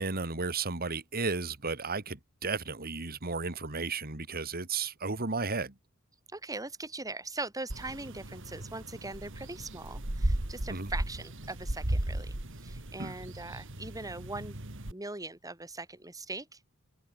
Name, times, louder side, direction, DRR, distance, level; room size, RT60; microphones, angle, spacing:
voice 1, 0.0-5.7 10.7-10.9 13.0-13.1, right 4 dB, 45° right, 2.7 m, -34 dB
voice 2, 6.3-14.6 14.9-16.7, right 2 dB, 15° right, 4.1 m, -41 dB
sound 1, 7.7-14.9, right 1 dB, 60° right, 2.6 m, -36 dB
head